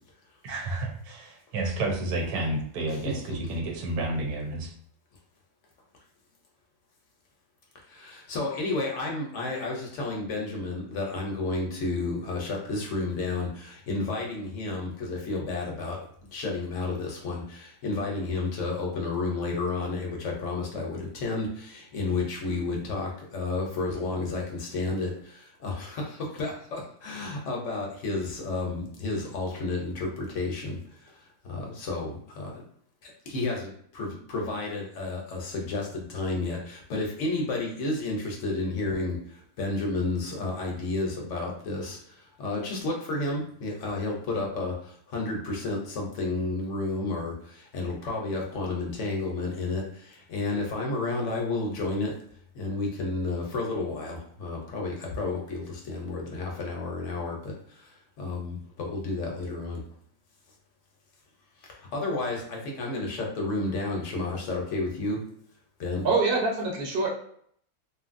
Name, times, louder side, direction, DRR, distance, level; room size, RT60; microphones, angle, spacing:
voice 1, 0.4-4.7, right 2 dB, 90° right, 1 dB, 1.2 m, -30 dB
voice 2, 7.9-16.0 16.3-30.8 31.4-32.6 33.0-39.2 39.6-42.0 42.4-52.1 52.5-57.9 58.2-59.8 61.9-65.2 65.8-66.0, left 3 dB, 65° left, -1 dB, 0.9 m, -31 dB
voice 3, 66.0-67.1, right 3 dB, 45° right, -2 dB, 0.9 m, -25 dB
2.8 x 2.5 x 2.4 m, 0.64 s
omnidirectional pair, 1.6 m